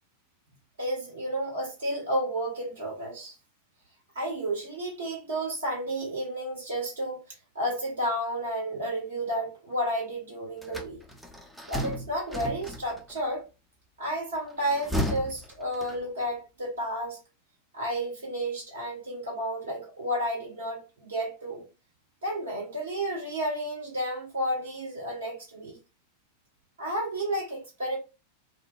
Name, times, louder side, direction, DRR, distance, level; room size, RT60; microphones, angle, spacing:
voice 1, 0.8-3.3 4.1-11.0 11.7-13.4 14.0-17.2 17.7-21.6 22.2-25.8 26.8-28.0, right 1 dB, 70° right, 1.4 m, -32 dB
sound 1, 10.6-13.2 14.5-16.3, equal, ahead, 0.4 m, -34 dB
2.5 x 2.1 x 2.4 m
figure-of-eight pair, 90°, 0 cm